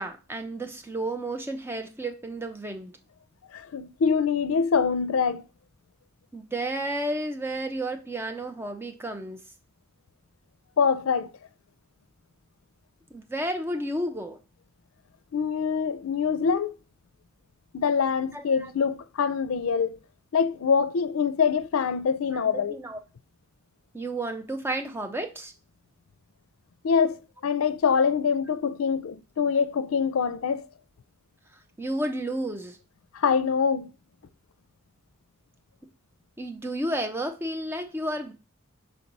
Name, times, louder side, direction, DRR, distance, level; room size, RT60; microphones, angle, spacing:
voice 1, 0.0-2.9 6.3-9.4 13.1-14.4 18.3-18.7 22.3-23.0 23.9-25.5 31.5-32.8 36.4-38.3, right 1 dB, 10° right, 0.7 m, -32 dB
voice 2, 3.5-5.5 10.8-11.3 15.3-16.7 17.7-20.0 20.3-22.8 26.8-30.7 33.1-33.9, left 6 dB, 85° left, 0.5 m, -24 dB
4.5 x 4.4 x 5.3 m
head